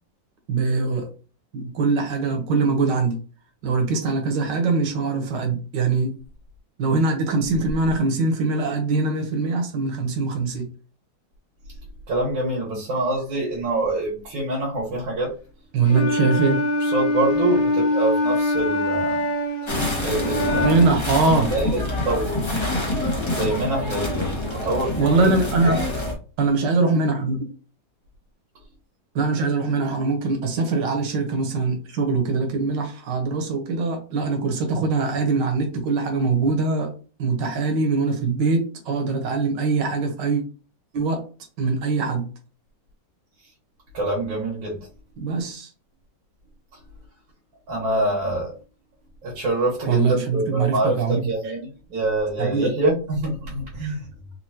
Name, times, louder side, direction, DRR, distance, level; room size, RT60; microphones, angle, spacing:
voice 1, 0.5-1.1 1.5-3.2 3.6-6.2 6.8-10.7 15.7-16.6 20.6-21.5 24.9-26.0 26.4-27.4 29.1-36.9 37.2-40.4 40.9-41.2 41.6-42.3 45.2-45.7 49.9-51.2 52.4-52.7 53.8-53.9, right 3 dB, 70° right, 4 dB, 1.6 m, -22 dB
voice 2, 12.1-15.3 16.0-16.1 16.8-19.3 20.0-20.9 21.3-21.8 22.0-22.3 23.3-25.3 43.9-44.8 47.7-48.5 49.2-54.1, right 2 dB, 85° right, -4 dB, 2.1 m, -25 dB
Wind instrument woodwind instrument, 15.9-21.0, left 1 dB, 75° left, 1.4 m, -23 dB
sound 1, 19.7-26.1, left 1 dB, 25° left, 0.7 m, -26 dB
4.4 x 2.7 x 2.8 m, 0.36 s
omnidirectional pair, 2.0 m